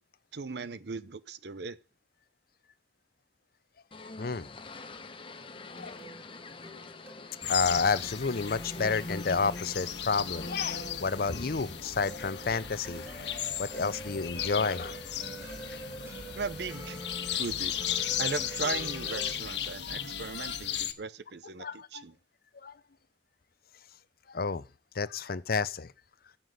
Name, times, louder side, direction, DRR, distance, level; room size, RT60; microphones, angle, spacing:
voice 1, 0.3-1.8 16.3-17.0 17.3-22.1, right 4 dB, 65° right, 0.8 m, -38 dB
sound 1, 3.9-19.7, left 2 dB, 30° left, 1.0 m, -46 dB
voice 2, 4.0-4.5 5.7-6.0 7.5-13.3 13.6-15.0 21.6-22.0 22.6-22.7 24.3-24.6 24.9-25.9, left 4 dB, 55° left, 0.7 m, -30 dB
sound 2, 5.1-19.3, right 2 dB, 15° right, 4.6 m, -47 dB
sound 3, 7.4-20.9, left 9 dB, 70° left, 1.3 m, -36 dB
14.0 x 5.9 x 7.9 m
head